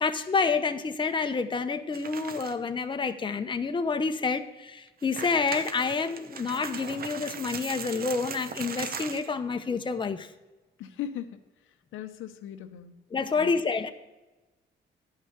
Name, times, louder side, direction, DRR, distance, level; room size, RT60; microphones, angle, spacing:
voice 1, 0.0-10.3 13.1-13.9, left 4 dB, 25° left, 8 dB, 0.8 m, -28 dB
sound 1, 1.9-2.7 3.1-3.2 3.8-3.9 4.9-9.3, right 6 dB, 50° right, 0.9 m, -39 dB
voice 2, 10.8-11.4 11.9-12.9 13.4-13.5, left 10 dB, 80° left, 9 dB, 0.8 m, -38 dB
11.0 x 5.6 x 7.9 m, 1.1 s
cardioid pair, 90°, 20 cm